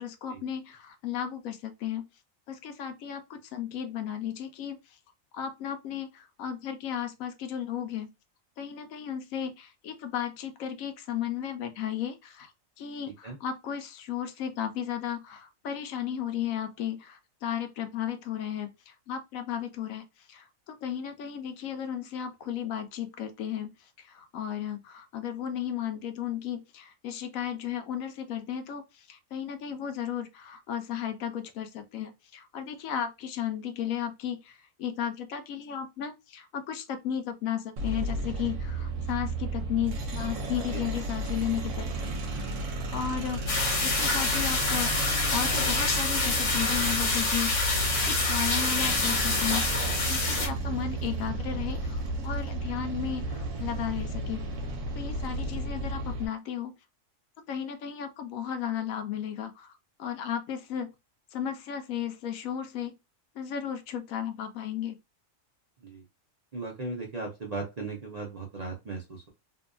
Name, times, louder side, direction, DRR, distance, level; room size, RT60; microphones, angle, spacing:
voice 1, 0.0-2.1 2.5-4.8 5.3-8.1 8.6-12.5 12.8-23.7 24.0-42.5 42.9-43.4 43.8-44.9 45.3-49.7 50.1-54.5 54.9-56.7 57.5-59.7 60.0-60.9 61.3-62.9 63.4-64.9, left 9 dB, 80° left, 1.0 m, -34 dB
sound 1, 37.8-56.3, right 2 dB, 70° right, 1.0 m, -33 dB
sound 2, 43.5-50.5, left 3 dB, 65° left, 1.4 m, -27 dB
voice 2, 66.5-69.3, right 3 dB, 45° right, 0.6 m, -37 dB
2.8 x 2.4 x 2.3 m
omnidirectional pair, 1.4 m